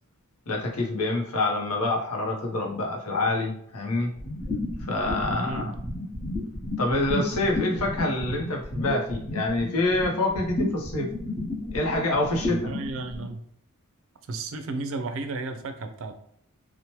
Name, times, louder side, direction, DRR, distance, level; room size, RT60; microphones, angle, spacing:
voice 1, 0.5-4.1 4.9-5.7 6.8-11.1 11.7-12.7, left 2 dB, 80° left, 1 dB, 0.7 m, -26 dB
sound 1, 4.2-13.3, left 1 dB, 30° left, 1.0 m, -32 dB
voice 2, 5.3-5.7 12.5-13.4 14.3-16.1, right 3 dB, 60° right, 7 dB, 0.4 m, -33 dB
2.9 x 2.1 x 2.9 m, 0.68 s
head